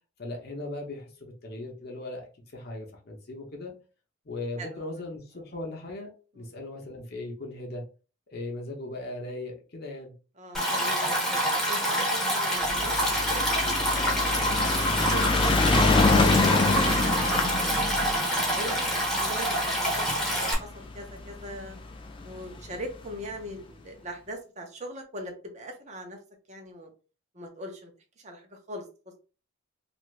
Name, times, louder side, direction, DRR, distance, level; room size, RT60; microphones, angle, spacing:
voice 1, 0.2-3.7 4.3-6.1 6.3-7.8 8.3-10.1, left 2 dB, 50° left, 0.7 m, -38 dB
voice 2, 10.4-13.8 14.4-15.3 17.2-21.8 22.2-26.2 26.5-26.9 27.3-27.9 28.2-28.8, equal, 35° right, 0.7 m, -41 dB
Stream, 10.5-20.5, equal, ahead, 0.7 m, -27 dB
sound 1, 12.6-21.1 21.9-22.0 22.2-22.3 22.6-22.7, left 3 dB, 25° left, 0.3 m, -25 dB
2.7 x 2.5 x 3.1 m
head